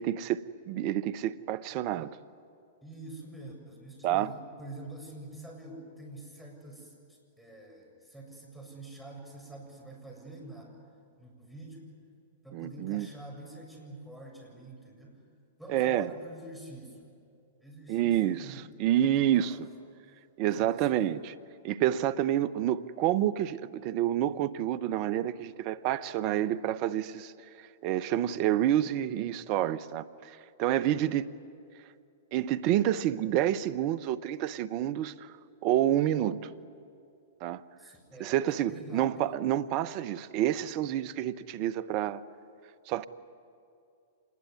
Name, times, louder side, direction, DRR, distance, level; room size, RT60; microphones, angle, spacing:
voice 1, 0.0-2.1 4.0-4.3 12.5-13.1 15.7-16.1 17.9-19.7 20.4-21.3 21.6-27.3 27.8-31.3 32.3-35.3 35.6-36.5 37.4-37.6 38.2-42.2 42.9-43.1, right 12 dB, 45° right, 0.9 m, -28 dB
voice 2, 2.8-10.8 11.2-11.9 12.4-15.2 15.6-17.1 17.6-18.6 19.0-19.6 20.6-21.1 37.8-38.4 38.7-39.3, right 2 dB, ahead, 7.2 m, -46 dB
26.5 x 20.5 x 9.7 m
hypercardioid pair, 110°, 0 cm